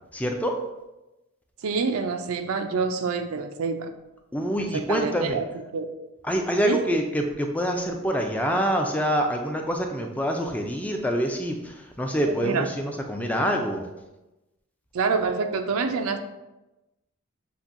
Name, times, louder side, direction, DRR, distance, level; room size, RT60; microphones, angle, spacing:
voice 1, 0.1-0.6 4.3-5.4 6.2-13.9, equal, 5° left, 2 dB, 0.3 m, -26 dB
voice 2, 1.6-3.9 4.7-5.5 5.7-5.9 6.6-6.8 12.3-12.7 14.9-16.2, right 5 dB, 85° right, 7 dB, 0.4 m, -26 dB
6.8 x 2.6 x 2.5 m, 1.0 s
head